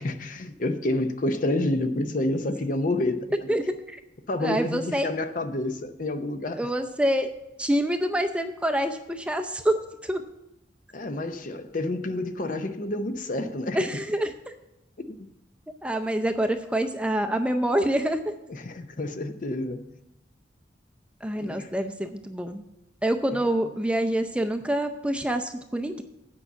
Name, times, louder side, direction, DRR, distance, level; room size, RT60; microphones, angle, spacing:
voice 1, 0.0-3.5 4.3-6.6 10.9-13.8 15.1-15.3 18.5-19.9 21.4-21.7 23.3-23.4, left 1 dB, 45° left, 0.7 m, -29 dB
voice 2, 3.5-4.0 4.4-5.1 6.6-7.3 7.6-10.2 13.7-14.3 15.8-18.3 21.2-22.6 23.0-26.0, right 1 dB, 5° right, 0.5 m, -26 dB
8.8 x 5.5 x 7.9 m
head